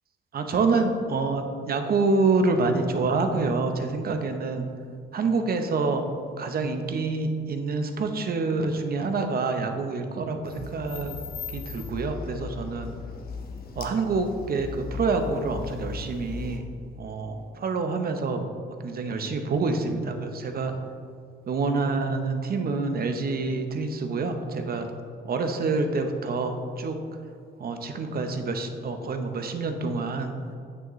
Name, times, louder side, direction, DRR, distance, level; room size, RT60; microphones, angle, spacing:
voice 1, 0.3-4.6 5.1-6.0 6.4-11.2 11.5-12.9 13.7-16.7 17.0-18.4 18.8-20.8 21.5-24.9 25.2-27.0 27.6-30.3, right 3 dB, 50° right, 6 dB, 0.8 m, -27 dB
sound 1, 10.4-16.6, left 4 dB, 50° left, 1.0 m, -37 dB
8.7 x 6.7 x 3.1 m, 2.3 s
cardioid pair, 90°, 20 cm